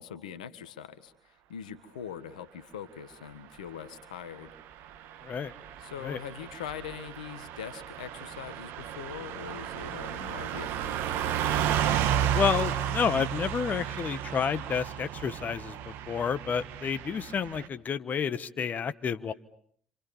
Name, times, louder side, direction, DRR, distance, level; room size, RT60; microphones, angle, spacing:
voice 1, 0.0-4.5 5.8-11.0, left 8 dB, 90° left, 12 dB, 1.5 m, -42 dB
Car passing by / Truck, 4.7-17.7, right 10 dB, 70° right, 1.5 m, -33 dB
voice 2, 12.3-15.8 16.1-19.3, left 7 dB, 45° left, 10 dB, 1.3 m, -30 dB
29.5 x 27.0 x 7.2 m, 0.62 s
hypercardioid pair, 55°, 4 cm